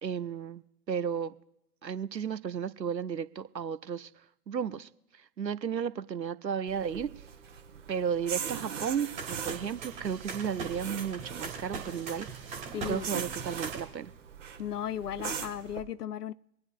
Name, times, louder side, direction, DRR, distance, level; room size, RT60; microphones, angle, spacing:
voice 1, 0.0-1.3 1.8-4.1 4.5-4.9 5.4-7.1 7.9-12.3 12.7-14.1, right 7 dB, 85° right, 0.8 m, -33 dB
sound 1, 6.7-15.8, right 7 dB, 50° right, 1.3 m, -41 dB
sound 2, 9.2-13.8, right 5 dB, 15° right, 2.0 m, -40 dB
voice 2, 12.7-13.1 14.6-16.3, left 10 dB, 65° left, 0.6 m, -35 dB
25.5 x 9.6 x 2.5 m
figure-of-eight pair, 130°, 50 cm